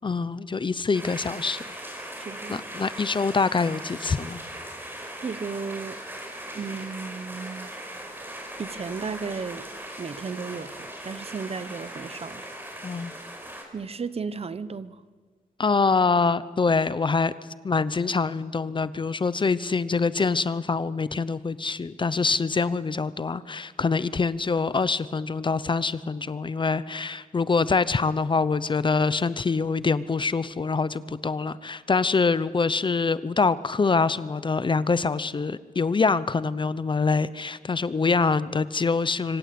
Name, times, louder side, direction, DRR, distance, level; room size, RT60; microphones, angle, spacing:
voice 1, 0.0-1.6 1.9-2.0 2.5-4.4 12.8-13.2 15.6-17.3 17.6-39.4, left 4 dB, 35° left, 0.8 m, -25 dB
sound 1, 0.9-13.6, right 1 dB, 15° right, 4.9 m, -39 dB
voice 2, 2.2-2.6 5.2-6.0 6.5-7.7 8.6-9.7 10.0-12.4 13.7-15.0, right 5 dB, 40° right, 1.1 m, -34 dB
25.5 x 25.5 x 8.7 m
wide cardioid pair, 135°, 15 cm